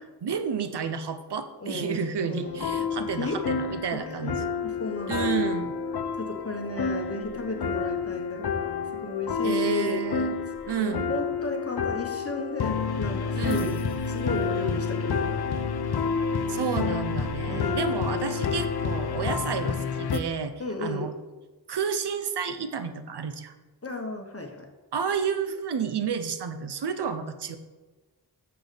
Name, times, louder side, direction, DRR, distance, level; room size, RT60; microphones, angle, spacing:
voice 1, 0.2-4.4 5.1-5.7 9.4-10.3 10.7-11.1 13.4-13.7 16.5-20.5 20.8-21.1 21.7-23.5 24.9-27.6, right 6 dB, 70° right, 10 dB, 0.6 m, -30 dB
voice 2, 1.6-2.8 3.2-3.4 3.9-5.4 6.2-10.0 10.8-13.7 14.1-15.4 17.4-17.9 20.6-21.1 23.8-24.7, left 2 dB, 35° left, 3 dB, 1.0 m, -34 dB
sound 1, 2.5-20.2, left 5 dB, 65° left, 0.6 m, -29 dB
6.9 x 6.1 x 3.3 m, 1.2 s
wide cardioid pair, 45°, 42 cm